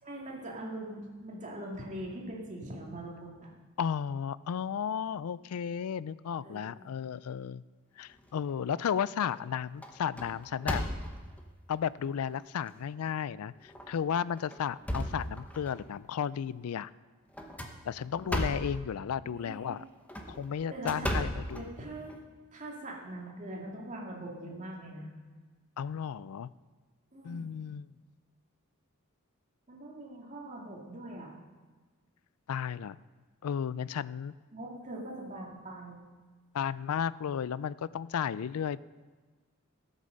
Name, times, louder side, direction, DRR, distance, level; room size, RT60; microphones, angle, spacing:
voice 1, 0.0-3.5 6.4-6.9 19.2-19.8 20.7-21.1 21.5-22.1 22.5-25.1 27.1-27.5 29.7-31.3 34.5-36.0, right 1 dB, 35° right, -2 dB, 2.5 m, -42 dB
voice 2, 3.8-7.6 8.0-10.8 11.7-16.9 17.8-19.9 20.3-21.6 25.8-26.5 27.2-27.9 32.5-33.0 33.4-34.3 36.5-38.8, left 8 dB, 90° left, 19 dB, 0.4 m, -34 dB
sound 1, 8.2-8.8 9.2-9.5 9.8-11.4 12.1-12.2 12.7-12.8 13.7-13.9 14.4-15.8 17.3-18.8 19.9-22.2, equal, 5° left, 1.0 m, -35 dB
14.5 x 8.2 x 6.5 m, 1.4 s
head